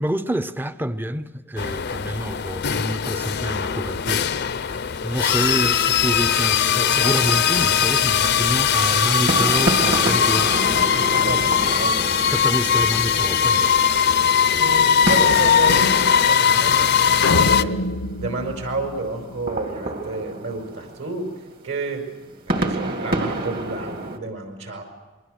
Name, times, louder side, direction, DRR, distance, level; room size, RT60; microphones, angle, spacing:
voice 1, 0.0-4.5 5.0-10.8 12.3-13.7, right 1 dB, 10° right, 0.7 m, -27 dB
sound 1, 1.6-17.6, left 7 dB, 55° left, 0.7 m, -20 dB
sound 2, 7.1-24.2, right 1 dB, 50° right, 2.2 m, -30 dB
voice 2, 10.8-12.0 14.6-17.8 18.2-21.3 21.6-22.0 22.6-24.8, right 3 dB, 65° right, 5.1 m, -30 dB
sound 3, 17.2-19.7, left 2 dB, 80° left, 0.9 m, -26 dB
28.0 x 22.0 x 6.5 m
head